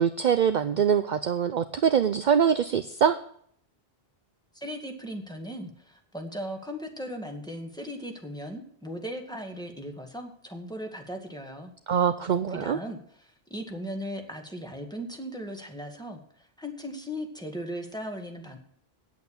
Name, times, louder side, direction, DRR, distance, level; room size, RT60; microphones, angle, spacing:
voice 1, 0.0-3.2 11.9-12.8, right 7 dB, 55° right, 10 dB, 0.7 m, -23 dB
voice 2, 4.5-11.7 12.5-18.6, equal, 5° left, 3 dB, 1.9 m, -38 dB
9.3 x 8.1 x 8.7 m, 0.62 s
omnidirectional pair, 1.0 m